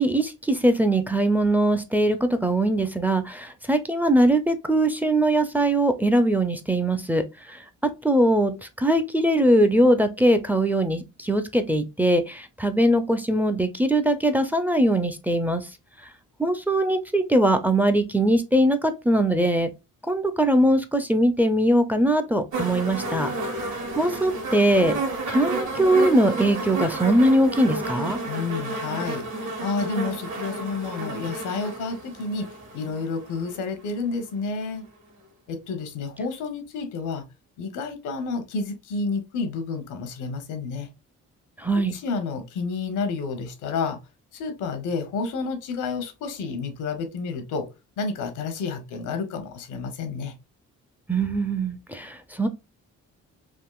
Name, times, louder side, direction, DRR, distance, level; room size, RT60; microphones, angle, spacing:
voice 1, 0.0-15.7 16.4-19.7 20.1-23.3 24.0-25.0 25.3-28.2 41.6-42.0 51.1-52.5, right 1 dB, 5° right, 0.4 m, -21 dB
sound 1, 22.5-33.6 34.5-34.6, right 2 dB, 65° right, 1.6 m, -31 dB
voice 2, 28.2-34.9 35.5-37.3 37.6-40.9 41.9-44.0 44.3-47.7 48.0-50.3, left 4 dB, 85° left, 0.8 m, -30 dB
3.6 x 2.5 x 2.3 m
cardioid pair, 90°, 30 cm